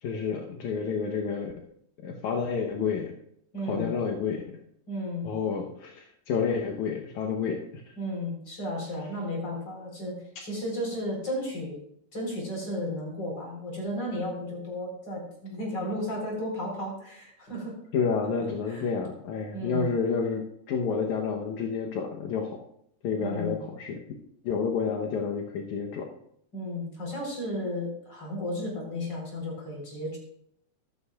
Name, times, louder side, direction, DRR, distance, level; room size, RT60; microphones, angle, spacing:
voice 1, 0.0-1.5 2.0-3.1 3.6-4.4 5.2-7.6 17.9-22.5 23.0-24.0 24.4-26.1, left 5 dB, 75° left, 0 dB, 2.4 m, -29 dB
voice 2, 3.5-3.9 4.9-5.3 8.0-11.8 12.1-17.8 18.7-18.9 19.5-19.9 23.2-23.6 26.5-30.2, left 1 dB, 35° left, -1 dB, 4.5 m, -34 dB
14.0 x 13.5 x 2.4 m, 0.71 s
omnidirectional pair, 3.4 m